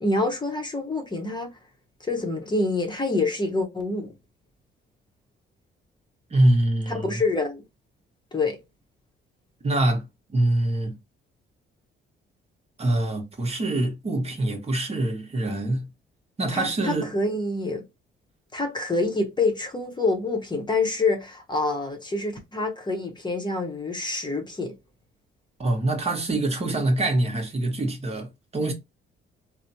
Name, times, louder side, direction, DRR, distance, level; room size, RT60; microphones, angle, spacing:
voice 1, 0.0-1.6 2.0-4.1 6.9-7.6 8.3-8.6 16.5-17.8 18.5-24.7, left 3 dB, 20° left, 0.8 m, -26 dB
voice 2, 6.3-7.2 9.6-10.0 10.3-10.9 12.8-15.9 16.4-17.1 25.6-28.3 28.5-28.7, right 1 dB, 30° right, 0.9 m, -24 dB
3.2 x 2.0 x 2.7 m
cardioid pair, 90°, 20 cm